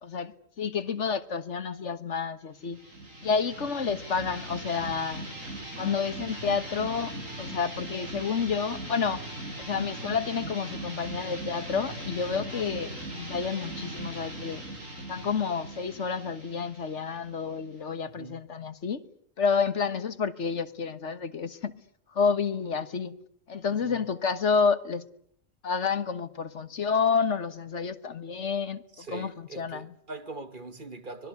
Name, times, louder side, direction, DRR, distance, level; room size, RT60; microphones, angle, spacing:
voice 1, 0.0-2.8 3.2-5.3 5.8-9.2 9.6-14.6 15.1-19.1 19.4-21.8 22.1-23.2 23.5-25.0 25.6-29.9, left 5 dB, 65° left, 1.6 m, -29 dB
sound 1, 2.6-18.0, right 1 dB, 90° right, 6.0 m, -39 dB
voice 2, 18.0-18.4 23.8-24.0 28.9-31.3, right 3 dB, 40° right, 1.7 m, -42 dB
25.5 x 20.5 x 9.5 m
omnidirectional pair, 1.3 m